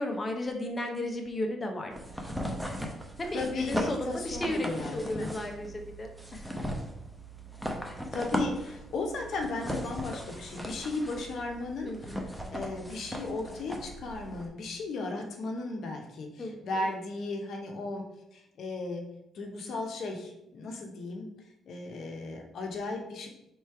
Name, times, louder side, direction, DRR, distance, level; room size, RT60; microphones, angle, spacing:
voice 1, 0.0-1.9 3.2-6.5 11.8-12.2 16.4-16.9, left 1 dB, 25° left, 2 dB, 0.7 m, -34 dB
sound 1, 1.9-14.5, equal, 5° right, 0.7 m, -38 dB
voice 2, 3.3-5.3 8.1-18.0 18.3-19.0 19.3-21.3 21.7-23.3, left 3 dB, 65° left, 2 dB, 0.7 m, -36 dB
3.3 x 3.0 x 4.6 m, 0.84 s
cardioid pair, 90°, 0 cm